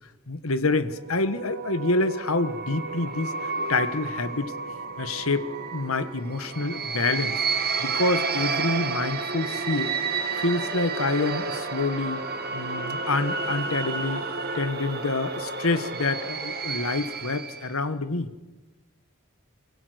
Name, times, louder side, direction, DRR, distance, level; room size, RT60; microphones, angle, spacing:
voice 1, 0.3-4.5 5.0-7.4 7.8-9.9 10.4-12.2 12.5-14.2 14.5-18.3, left 3 dB, 70° left, 12 dB, 1.5 m, -27 dB
sound 1, 0.9-17.7, right 4 dB, 45° right, 2.0 m, -31 dB
28.0 x 16.0 x 8.0 m, 1.2 s
head